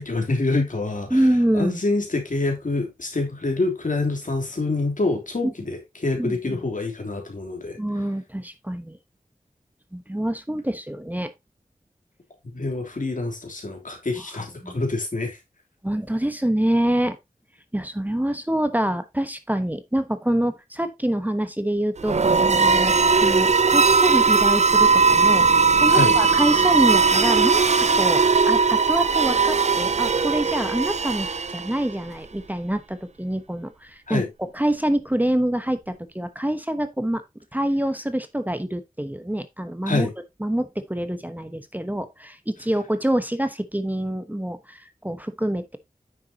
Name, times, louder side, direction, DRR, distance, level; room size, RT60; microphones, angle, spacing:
voice 1, 0.0-1.3 1.5-7.8 12.4-15.4 25.9-26.1 34.1-34.3 39.8-40.1, left 2 dB, 65° left, 3.2 m, -26 dB
voice 2, 1.1-1.8 6.1-6.6 7.8-9.0 9.9-11.3 14.6-14.7 15.8-17.2 17.7-22.9 23.2-25.5 25.8-34.2 34.5-37.2 37.5-40.1 40.4-45.8, right 1 dB, 10° right, 1.1 m, -26 dB
sound 1, 22.0-31.9, right 5 dB, 50° right, 0.5 m, -19 dB
9.5 x 7.0 x 2.8 m
wide cardioid pair, 65°, 14 cm